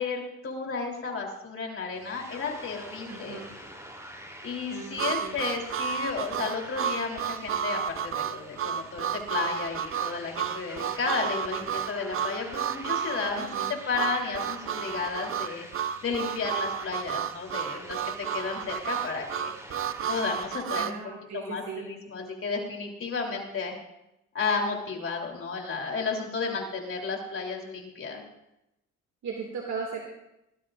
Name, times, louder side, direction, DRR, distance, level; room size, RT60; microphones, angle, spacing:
voice 1, 0.0-3.4 4.4-13.5 13.9-18.0 18.3-19.5 20.1-21.0 21.3-23.7 24.3-28.2, left 4 dB, 45° left, 1 dB, 3.4 m, -33 dB
sound 1, 1.9-20.5, equal, 10° right, 3.2 m, -46 dB
voice 2, 3.1-3.5 4.7-5.4 13.3-13.7 20.7-21.9 29.2-30.0, right 5 dB, 65° right, 0 dB, 2.2 m, -37 dB
Harmonica, 5.0-21.0, right 9 dB, 45° right, 0.6 m, -32 dB
19.5 x 12.5 x 2.5 m, 0.86 s
cardioid pair, 90°, 30 cm